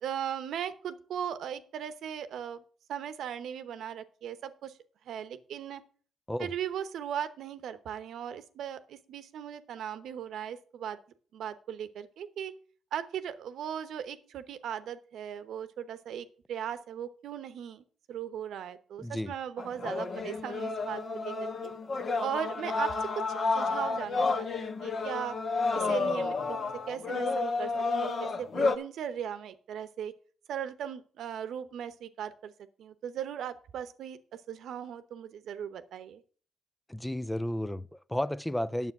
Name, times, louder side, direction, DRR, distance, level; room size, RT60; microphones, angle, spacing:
voice 1, 0.0-2.6 2.9-4.8 5.0-5.8 6.4-11.0 11.3-12.5 12.9-21.7 22.2-23.2 23.5-25.4 25.7-26.6 26.9-27.7 28.0-30.1 30.5-32.5 32.8-34.2 34.5-36.2, right 9 dB, 75° right, 0.9 m, -38 dB
voice 2, 19.0-19.3 36.9-38.9, left 1 dB, 5° left, 0.4 m, -32 dB
sound 1, 19.6-28.8, left 4 dB, 45° left, 1.2 m, -31 dB
9.3 x 7.0 x 5.9 m
cardioid pair, 90°, 0 cm